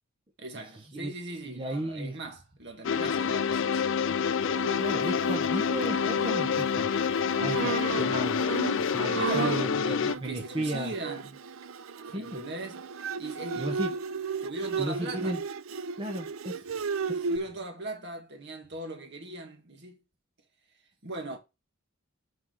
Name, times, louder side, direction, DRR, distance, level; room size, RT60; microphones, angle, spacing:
voice 1, 0.4-3.9 4.9-5.1 9.1-11.4 12.2-12.8 13.2-14.0 14.4-15.4 17.3-20.0 21.0-21.4, right 2 dB, 55° right, 1.9 m, -39 dB
voice 2, 1.4-2.2 4.8-6.9 7.4-8.5 8.9-10.9 12.1-12.4 13.6-13.9 14.8-15.4 15.9-16.6 17.1-17.3, right 1 dB, 25° right, 1.0 m, -34 dB
sound 1, 2.8-10.1, left 6 dB, 60° left, 0.5 m, -27 dB
Bowed string instrument, 4.4-17.4, right 5 dB, 70° right, 0.5 m, -35 dB
6.0 x 4.8 x 6.3 m
head